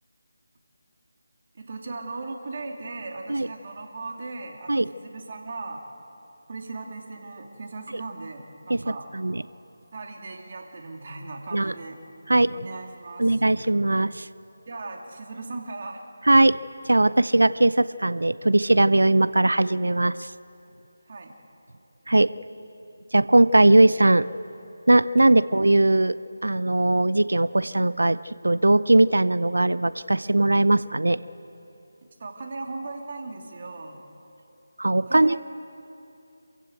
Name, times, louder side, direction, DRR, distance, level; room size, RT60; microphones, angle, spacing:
voice 1, 1.5-5.8 6.5-9.1 9.9-12.0 12.5-13.3 14.7-16.1 21.1-21.3 32.2-34.0 35.1-35.4, right 3 dB, 45° right, 2 dB, 2.9 m, -37 dB
voice 2, 13.2-14.3 16.3-16.6 16.8-20.3 22.1-22.3 23.1-24.3 24.9-26.2 26.4-31.2 34.8-35.4, right 2 dB, 75° right, 17 dB, 0.6 m, -19 dB
26.5 x 15.5 x 8.0 m, 2.9 s
figure-of-eight pair, 160°, 0 cm